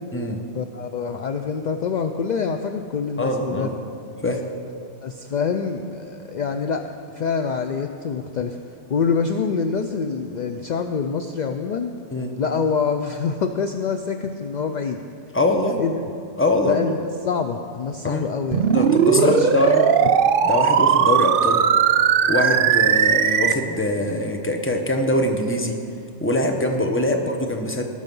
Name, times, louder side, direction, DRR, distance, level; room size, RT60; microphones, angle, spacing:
voice 1, 0.5-3.7 4.2-4.3 5.0-6.8 7.1-8.6 8.9-11.9 12.4-15.0 15.8-16.0 16.6-18.7 19.1-19.7, left 5 dB, 60° left, 6 dB, 0.4 m, -25 dB
voice 2, 3.2-3.8 4.2-4.4 12.1-12.3 15.3-15.8 16.4-16.9 18.0-18.2 18.6-19.9 20.4-21.6 22.3-25.8 26.2-27.8, left 1 dB, 10° left, 3 dB, 0.8 m, -23 dB
sound 1, 18.5-23.5, right 8 dB, 60° right, 0.6 m, -18 dB
18.5 x 6.4 x 5.4 m, 2.4 s
omnidirectional pair, 1.3 m